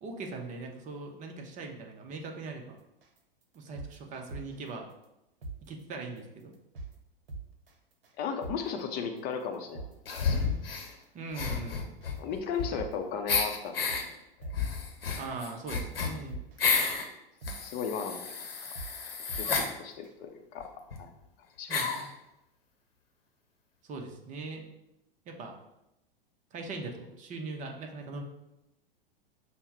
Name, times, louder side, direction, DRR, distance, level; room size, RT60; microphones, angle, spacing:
voice 1, 0.0-2.8 3.5-4.9 5.6-6.5 11.1-11.8 15.2-16.4 19.4-19.6 21.7-22.1 23.8-24.7 25.3-25.5 26.5-28.2, right 3 dB, 25° right, 3 dB, 0.7 m, -40 dB
sound 1, 3.0-3.2 3.5-4.7 5.0-5.1 5.4-5.6 6.0-6.2 6.5-6.9 7.3-7.7 8.0-8.1 8.4-8.6 9.0-9.2 9.5-10.7 11.0-11.1 11.4-11.6 12.0-12.2 12.5-12.9 13.3-14.1 14.4-14.6 15.0-15.2 15.5-16.7 17.0-17.1 17.4-17.6 18.0-18.2 18.5-18.9 19.3-19.7 20.0-20.1, right 3 dB, 70° right, 0.8 m, -41 dB
voice 2, 8.2-9.9 10.2-10.5 12.2-14.1 14.4-14.5 17.5-18.2 18.7-18.8 19.3-19.5 19.8-20.6 21.0-21.1 21.6-21.8, left 6 dB, 35° left, 5 dB, 0.6 m, -35 dB
sound 2, 10.1-10.9 11.3-12.9 13.3-14.0 14.5-17.0 17.4-19.7 20.6-20.7 20.9-21.0 21.7-22.1, left 5 dB, 75° left, 0.8 m, -31 dB
5.4 x 2.1 x 4.6 m, 0.89 s
figure-of-eight pair, 95°, 29 cm